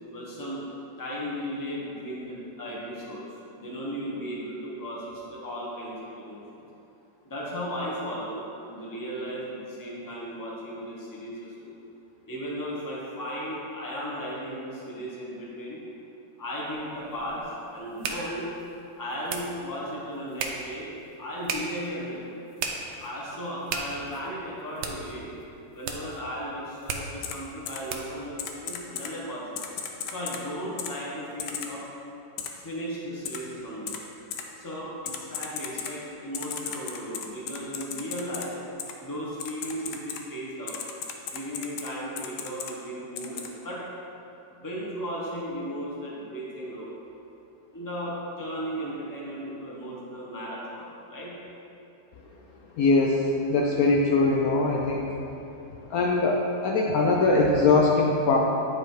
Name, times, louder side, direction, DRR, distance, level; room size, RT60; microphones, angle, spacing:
voice 1, 0.1-0.6 1.0-3.2 3.6-6.4 7.2-11.7 12.3-15.8 16.4-18.4 19.0-20.9 21.2-22.2 23.0-25.3 25.7-29.6 30.1-31.8 32.6-34.0 34.6-38.6 39.0-40.8 41.3-43.8 44.5-46.9 47.7-51.3, equal, 15° left, -5 dB, 0.9 m, -35 dB
sound 1, 16.7-28.3, right 5 dB, 90° right, 1.3 m, -38 dB
Typing, 27.2-27.3 27.7-27.8 28.4-29.1 29.6-30.4 30.8-30.9 31.4-31.7 32.4-32.5 33.3-33.4 33.9-34.0 34.3-34.4 35.1-35.9 36.3-38.4 38.8-38.9 39.4-40.2 40.7-41.9 42.2-42.7 43.2-43.5, left 8 dB, 85° left, 1.2 m, -35 dB
voice 2, 52.8-55.1 55.9-58.4, left 3 dB, 70° left, -2 dB, 0.9 m, -22 dB
9.3 x 3.2 x 4.6 m, 2.8 s
omnidirectional pair, 1.8 m